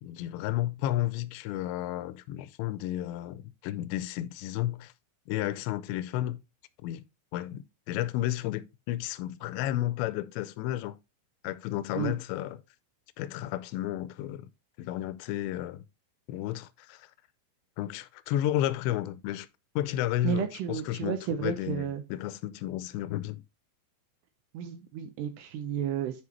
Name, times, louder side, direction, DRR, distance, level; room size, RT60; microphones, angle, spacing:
voice 1, 0.0-4.9 5.3-6.4 6.8-7.0 7.3-11.0 11.4-12.6 13.2-14.5 14.8-15.8 16.3-17.1 17.8-19.5 19.8-23.4, left 14 dB, 85° left, 2.7 m, -32 dB
voice 2, 20.2-22.0 24.5-26.2, right 8 dB, 75° right, 2.8 m, -32 dB
9.6 x 5.5 x 2.9 m
omnidirectional pair, 5.3 m